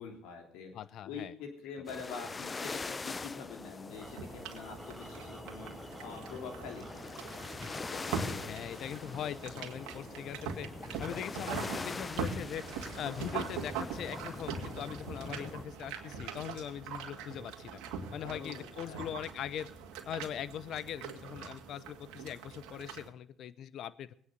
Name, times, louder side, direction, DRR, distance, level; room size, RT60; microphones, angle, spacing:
voice 1, 0.0-0.7 1.0-7.1 18.2-19.1, left 5 dB, 80° left, 4 dB, 3.2 m, -45 dB
voice 2, 0.7-1.3 7.9-17.8 18.1-19.7 20.1-24.1, left 10 dB, 65° left, 17 dB, 0.7 m, -41 dB
sound 1, 1.8-15.6, left 4 dB, 30° left, 0.6 m, -43 dB
sound 2, 3.9-23.1, right 6 dB, 80° right, 2.0 m, -42 dB
sound 3, 4.0-20.1, equal, ahead, 5.7 m, -56 dB
20.5 x 9.4 x 6.6 m, 0.62 s
supercardioid pair, 70°, 0 cm